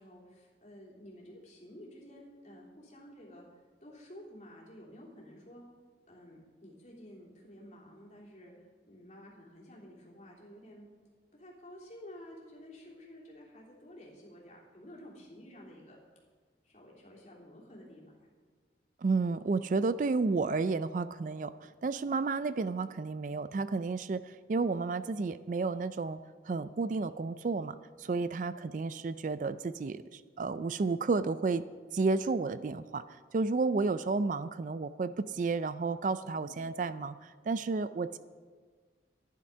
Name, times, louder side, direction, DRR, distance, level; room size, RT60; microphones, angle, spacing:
voice 1, 0.0-3.4 3.8-5.6 6.1-8.5 8.9-10.9 11.3-16.0 16.6-18.3 28.0-28.2 36.3-36.6, equal, 40° left, -4 dB, 3.3 m, -52 dB
voice 2, 19.0-26.2 26.4-31.6 31.9-33.0 33.3-38.2, right 4 dB, 45° right, 14 dB, 0.4 m, -32 dB
12.5 x 10.5 x 5.6 m, 1.5 s
head